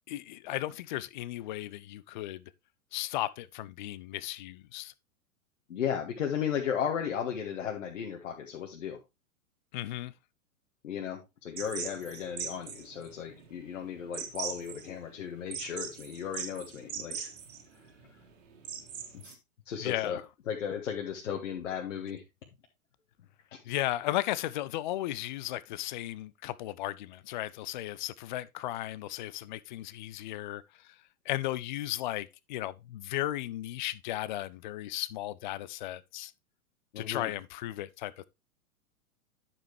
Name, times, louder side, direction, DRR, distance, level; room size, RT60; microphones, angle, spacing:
voice 1, 0.1-2.4 2.9-4.9 9.7-10.1 19.8-20.2 23.6-31.0 31.3-36.3 37.0-38.3, left 15 dB, 35° left, 0.5 m, -35 dB
voice 2, 5.7-9.0 10.8-17.3 19.1-19.4 19.6-20.2 20.5-22.2 36.9-37.3, left 8 dB, 60° left, 1.7 m, -35 dB
sound 1, 11.6-19.3, right 7 dB, 60° right, 2.0 m, -41 dB
9.8 x 7.0 x 3.2 m
figure-of-eight pair, 105°, 43 cm